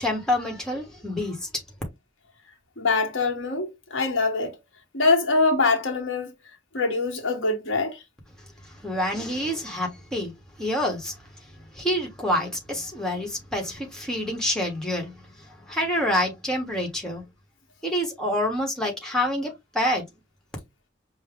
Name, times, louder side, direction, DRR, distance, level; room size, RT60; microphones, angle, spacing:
voice 1, 0.0-1.5 8.6-10.3 10.6-11.2 11.7-17.2 17.8-20.0, left 1 dB, 5° left, 1.2 m, -27 dB
voice 2, 2.8-4.6 4.9-6.3 6.7-8.0, left 3 dB, 90° left, 1.2 m, -24 dB
5.4 x 2.2 x 3.5 m
head